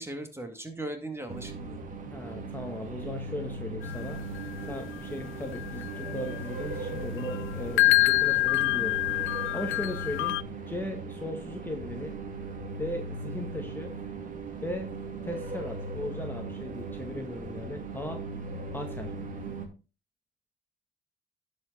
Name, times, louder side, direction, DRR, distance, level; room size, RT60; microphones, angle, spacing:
voice 1, 0.0-1.8, right 1 dB, 10° right, 5 dB, 2.2 m, -38 dB
sound 1, 1.3-19.7, right 3 dB, 40° right, 2.4 m, -38 dB
voice 2, 2.0-4.2 4.6-9.0 9.5-10.4 10.7-12.2 12.8-13.9 14.6-14.9 15.2-18.2 18.7-19.1, left 1 dB, 10° left, 3 dB, 1.6 m, -37 dB
sound 2, 3.8-10.4, left 19 dB, 85° left, 0.4 m, -28 dB
11.5 x 5.4 x 4.0 m, 0.32 s
cardioid pair, 90°, 20 cm